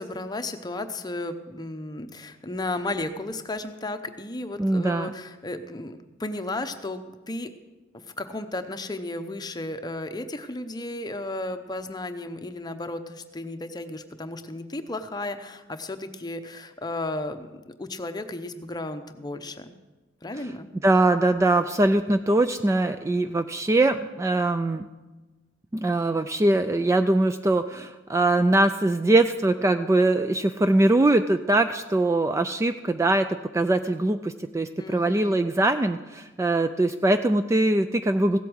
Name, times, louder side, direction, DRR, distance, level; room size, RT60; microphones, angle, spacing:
voice 1, 0.0-7.5 7.9-19.7 20.2-20.7 34.8-35.4, left 2 dB, 20° left, 8 dB, 0.8 m, -34 dB
voice 2, 4.6-5.1 20.8-24.9 25.7-33.3 33.5-38.4, right 2 dB, 15° right, 9 dB, 0.3 m, -22 dB
16.0 x 8.3 x 6.2 m, 1.2 s
head